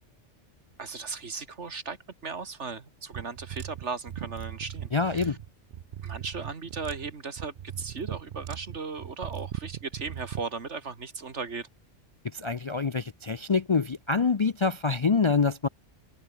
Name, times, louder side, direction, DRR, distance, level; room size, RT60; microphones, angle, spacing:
voice 1, 0.8-5.4 6.0-11.7, right 4 dB, 75° right, 2.4 m, -37 dB
sound 1, 3.1-10.5, right 10 dB, 55° right, 0.6 m, -39 dB
voice 2, 4.9-5.4 12.3-15.7, left 4 dB, 40° left, 0.4 m, -26 dB
omnidirectional pair, 1.2 m